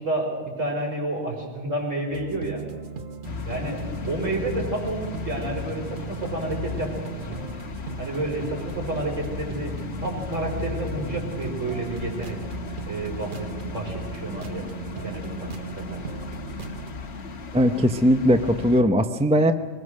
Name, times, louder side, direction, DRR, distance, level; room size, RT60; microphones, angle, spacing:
voice 1, 0.0-2.6 3.5-3.8 4.1-7.4 8.0-12.4 12.9-14.6 15.0-15.5 15.8-16.0, right 2 dB, 65° right, 0 dB, 5.1 m, -30 dB
sound 1, 2.1-16.9, right 5 dB, 40° right, 1.1 m, -38 dB
sound 2, 3.2-18.8, left 5 dB, 50° left, 1.5 m, -36 dB
voice 2, 17.5-19.5, equal, 5° right, 8 dB, 0.6 m, -19 dB
23.5 x 19.5 x 6.4 m, 1.5 s
omnidirectional pair, 1.4 m